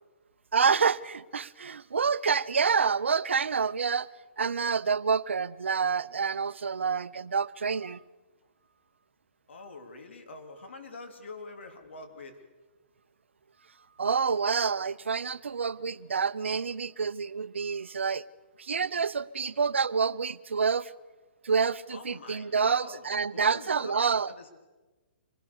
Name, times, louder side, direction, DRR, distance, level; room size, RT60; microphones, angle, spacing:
voice 1, 0.5-4.1 4.4-8.0 14.0-18.2 18.6-20.9 21.4-24.3, right 5 dB, 85° right, 0.6 m, -28 dB
voice 2, 9.5-12.4 21.9-23.0 23.3-24.5, left 3 dB, 75° left, 3.2 m, -45 dB
25.5 x 18.0 x 7.0 m
hypercardioid pair, 135°, 6 cm